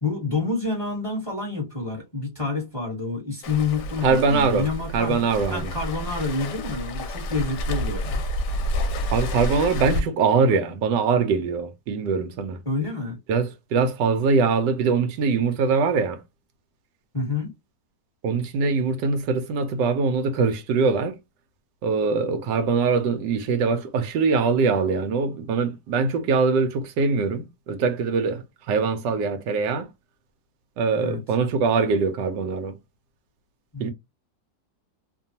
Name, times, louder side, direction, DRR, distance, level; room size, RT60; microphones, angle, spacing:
voice 1, 0.0-5.2 5.5-8.2 12.6-13.2 17.1-17.5 31.0-31.2 33.7-33.9, left 3 dB, 20° left, 1.0 m, -28 dB
Waves surf, 3.4-10.0, equal, 75° left, 1.2 m, -29 dB
voice 2, 4.0-4.7 4.9-5.7 9.1-12.6 13.3-16.2 18.2-21.2 21.8-29.9 30.8-32.7 33.8-33.9, right 4 dB, 80° right, 1.2 m, -23 dB
2.9 x 2.2 x 2.6 m
omnidirectional pair, 1.9 m